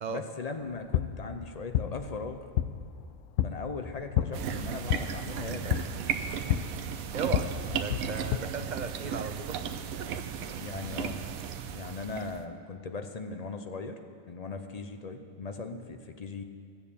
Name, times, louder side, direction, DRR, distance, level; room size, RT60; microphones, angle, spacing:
voice 1, 0.1-2.4 3.4-5.8 10.6-11.2 11.7-14.0 14.3-16.4, left 4 dB, 45° left, 6 dB, 0.5 m, -38 dB
sound 1, 0.6-8.4, left 11 dB, 75° left, 0.9 m, -32 dB
sound 2, 4.3-12.4, right 7 dB, 90° right, 1.1 m, -35 dB
voice 2, 7.1-7.5 7.7-9.6 10.0-10.2, right 5 dB, 55° right, 8 dB, 0.5 m, -36 dB
13.5 x 7.0 x 8.5 m, 2.2 s
omnidirectional pair, 1.4 m